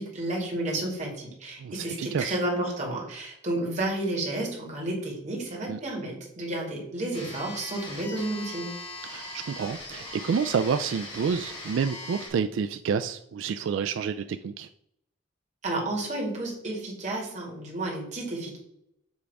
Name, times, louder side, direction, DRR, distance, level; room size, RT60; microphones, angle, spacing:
voice 1, 0.0-8.7 15.6-18.6, right 1 dB, 40° right, -3 dB, 2.2 m, -31 dB
voice 2, 1.6-2.4 5.7-5.8 9.0-14.7, right 6 dB, 90° right, 10 dB, 0.3 m, -29 dB
sound 1, 7.1-12.3, left 2 dB, 25° left, 1.6 m, -40 dB
7.3 x 3.4 x 4.7 m, 0.75 s
head